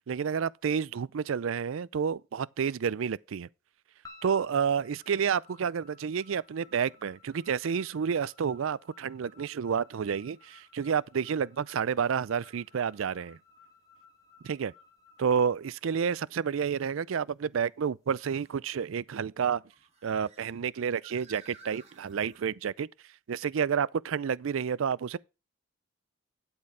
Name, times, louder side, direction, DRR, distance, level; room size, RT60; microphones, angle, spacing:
voice 1, 0.0-3.5 4.2-13.4 14.4-14.7 15.2-19.6 20.0-22.9 23.3-25.2, right 7 dB, 75° right, 0.4 m, -30 dB
sound 1, 4.0-16.3, left 4 dB, 15° left, 1.2 m, -58 dB
sound 2, 11.1-11.2 14.8-14.9 18.0-18.6 19.5-22.5, right 4 dB, 30° right, 1.5 m, -57 dB
11.5 x 4.6 x 4.9 m
head